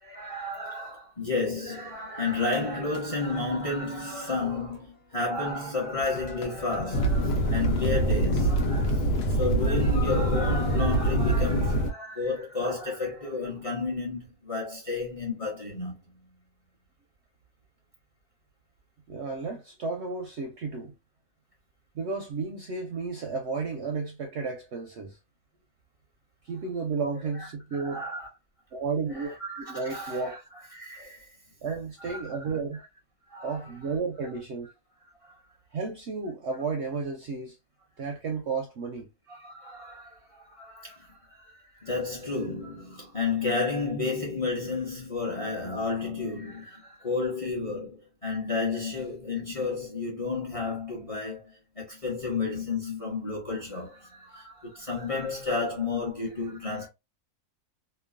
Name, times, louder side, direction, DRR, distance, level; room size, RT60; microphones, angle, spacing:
voice 1, 0.0-16.0 27.3-27.5 27.7-28.3 29.1-30.4 30.7-31.3 32.0-32.6 33.3-33.7 35.2-35.3 39.3-41.2 41.5-56.9, left 3 dB, 30° left, 0.7 m, -32 dB
sound 1, 2.5-5.2 5.4-9.5, equal, 65° left, 1.1 m, -42 dB
sound 2, 6.9-11.9, right 1 dB, 85° left, 1.3 m, -25 dB
voice 2, 19.1-20.9 21.9-25.2 26.4-28.0 28.7-30.4 31.6-32.8 33.4-34.7 35.7-37.6 38.0-39.1, right 4 dB, 65° right, 0.7 m, -32 dB
3.0 x 2.2 x 2.3 m
omnidirectional pair, 1.6 m